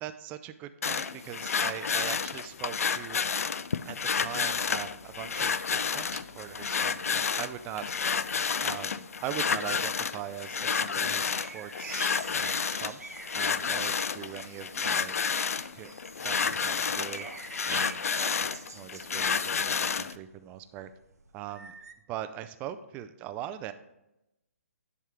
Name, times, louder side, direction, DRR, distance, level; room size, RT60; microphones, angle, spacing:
voice 1, 0.0-3.3 3.8-8.0 8.6-13.0 13.3-15.2 15.7-15.9 16.2-17.3 17.7-18.0 18.4-20.9 21.3-21.7 22.1-23.7, right 11 dB, 15° right, 11 dB, 0.3 m, -41 dB
sound 1, 0.8-20.2, left 6 dB, 70° left, 0.3 m, -30 dB
sound 2, 10.0-21.9, right 3 dB, 85° right, 0.7 m, -46 dB
sound 3, 13.5-13.9 14.7-15.0 15.8-16.0 16.9-17.5 18.0-18.4, right 1 dB, ahead, 1.0 m, -48 dB
10.5 x 3.6 x 4.4 m, 0.91 s
figure-of-eight pair, 135°, 8 cm